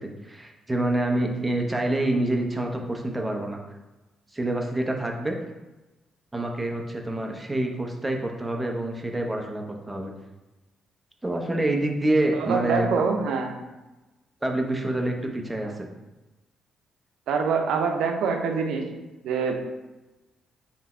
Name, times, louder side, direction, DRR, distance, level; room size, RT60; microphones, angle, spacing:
voice 1, 0.0-3.8 4.3-5.4 6.3-10.1 11.2-12.9 14.4-15.9, right 1 dB, 15° right, 2 dB, 0.7 m, -27 dB
voice 2, 12.3-13.6 17.3-18.9 19.2-19.5, right 5 dB, 80° right, 3 dB, 0.6 m, -25 dB
3.4 x 2.9 x 4.2 m, 1.1 s
cardioid pair, 90°, 0 cm